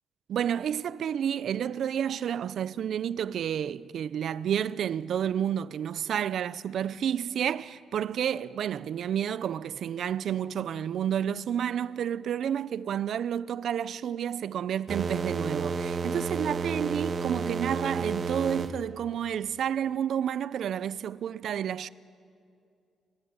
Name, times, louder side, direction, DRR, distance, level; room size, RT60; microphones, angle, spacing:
voice 1, 0.3-21.9, right 9 dB, 65° right, 0.6 m, -30 dB
sound 1, 14.9-18.7, right 4 dB, 45° right, 1.4 m, -31 dB
26.5 x 21.5 x 9.7 m
cardioid pair, 115°, 0 cm